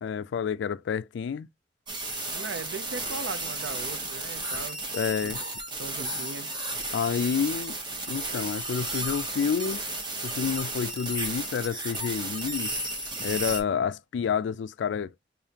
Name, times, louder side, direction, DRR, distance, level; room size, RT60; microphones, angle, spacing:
voice 1, 0.0-1.5 4.9-5.4 6.9-7.8 8.1-9.8 10.2-12.7 13.2-15.1, left 7 dB, 70° left, 0.3 m, -29 dB
sound 1, 1.9-13.6, right 2 dB, 25° right, 0.9 m, -33 dB
voice 2, 2.3-4.9 5.2-5.5 5.8-6.5, right 4 dB, 80° right, 0.5 m, -38 dB
5.0 x 2.7 x 2.8 m
head